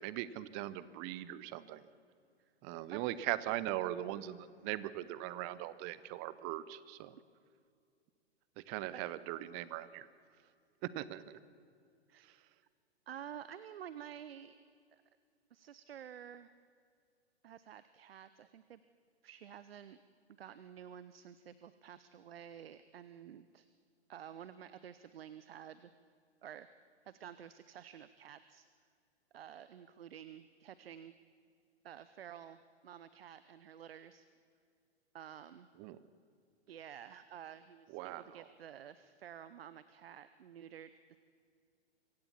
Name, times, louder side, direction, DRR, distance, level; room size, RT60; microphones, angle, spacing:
voice 1, 0.0-1.8 2.6-7.1 8.7-10.1 10.8-11.4 35.8-36.0 37.9-38.2, right 14 dB, 30° right, 16 dB, 0.8 m, -40 dB
voice 2, 13.1-14.5 14.9-15.0 15.5-16.5 17.4-18.8 19.2-20.0 20.4-23.7 24.1-25.9 26.4-26.7 27.0-28.7 29.3-31.1 31.8-34.3 35.1-35.7 36.7-41.2, right 9 dB, 60° right, 14 dB, 0.8 m, -51 dB
25.0 x 16.0 x 7.3 m, 2.3 s
figure-of-eight pair, 110°, 34 cm